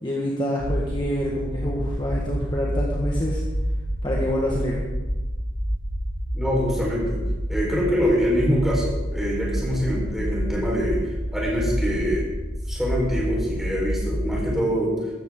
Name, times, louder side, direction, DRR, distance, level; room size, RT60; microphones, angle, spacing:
voice 1, 0.0-3.4 4.0-4.8, equal, 25° left, -3 dB, 1.5 m, -26 dB
sound 1, 0.6-14.5, equal, 55° left, 3.6 m, -28 dB
voice 2, 6.3-7.2 7.5-12.3 12.7-14.9, equal, ahead, -5 dB, 4.5 m, -24 dB
15.0 x 13.0 x 3.8 m, 1.2 s
head